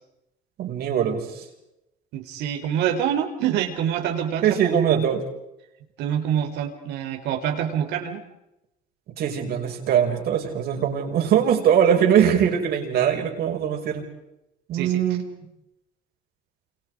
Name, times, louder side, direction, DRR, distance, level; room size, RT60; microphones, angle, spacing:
voice 1, 0.6-1.4 4.4-5.2 9.2-14.0 14.7-15.2, right 9 dB, 70° right, 2 dB, 5.9 m, -21 dB
voice 2, 2.1-5.0 6.0-8.2 14.7-15.0, right 9 dB, 85° right, 4 dB, 4.3 m, -26 dB
29.5 x 28.0 x 5.0 m, 0.89 s
cardioid pair, 110°, 17 cm